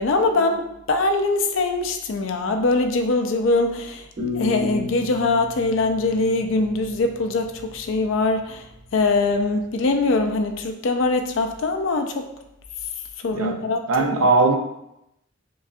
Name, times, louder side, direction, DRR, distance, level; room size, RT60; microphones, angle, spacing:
voice 1, 0.0-4.0 4.3-8.7 8.9-12.3 13.2-14.3, left 3 dB, 60° left, 5 dB, 0.4 m, -22 dB
sound 1, 4.2-7.1, left 3 dB, 45° right, 1.2 m, -32 dB
voice 2, 13.3-14.6, right 3 dB, 75° right, 4 dB, 0.5 m, -20 dB
5.2 x 2.3 x 2.4 m, 0.86 s
head